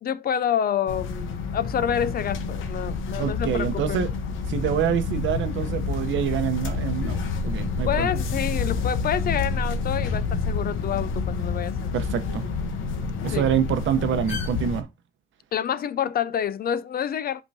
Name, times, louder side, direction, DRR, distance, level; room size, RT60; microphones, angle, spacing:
voice 1, 0.0-4.1 7.9-11.9 13.3-13.5 15.5-17.4, left 9 dB, 50° left, 0.5 m, -28 dB
sound 1, 0.9-14.8, left 4 dB, 85° left, 1.0 m, -28 dB
voice 2, 3.2-4.1 4.5-8.1 11.9-12.5 13.2-14.9, right 9 dB, 75° right, 0.9 m, -26 dB
11.0 x 3.7 x 2.7 m
cardioid pair, 90°, 20 cm